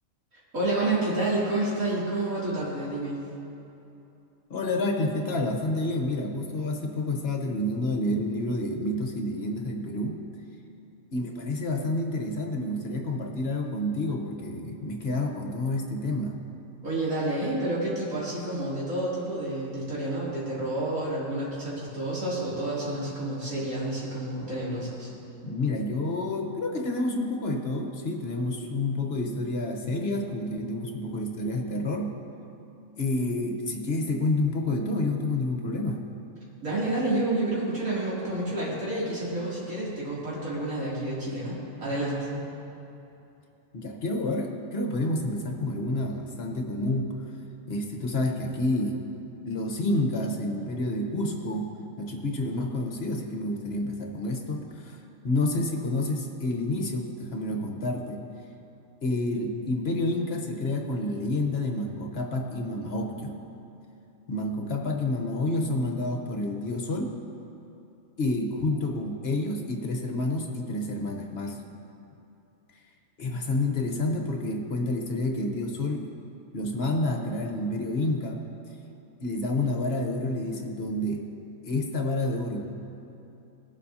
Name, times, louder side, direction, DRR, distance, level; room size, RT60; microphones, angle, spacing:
voice 1, 0.5-3.2 16.8-25.1 36.6-42.4, right 2 dB, 80° right, -8 dB, 3.3 m, -29 dB
voice 2, 4.5-10.2 11.1-16.4 25.0-25.1 25.4-32.2 33.0-36.0 43.7-47.1 47.7-49.0 49.4-58.2 59.0-63.4 64.3-67.2 68.2-71.6 73.2-76.1 76.5-78.4 79.2-81.3 81.6-82.7, left 2 dB, 50° left, 2 dB, 1.2 m, -29 dB
20.5 x 7.5 x 2.8 m, 2.8 s
omnidirectional pair, 1.5 m